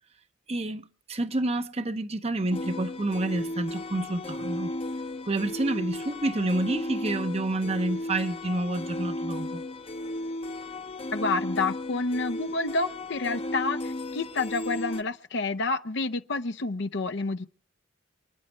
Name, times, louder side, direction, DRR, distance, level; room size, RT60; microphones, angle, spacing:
voice 1, 0.5-4.7 5.3-9.6, right 2 dB, 30° right, 0.8 m, -29 dB
sound 1, 2.5-15.0, left 1 dB, 30° left, 0.8 m, -35 dB
voice 2, 11.1-17.4, left 3 dB, 60° left, 0.7 m, -29 dB
28.0 x 9.9 x 4.5 m
head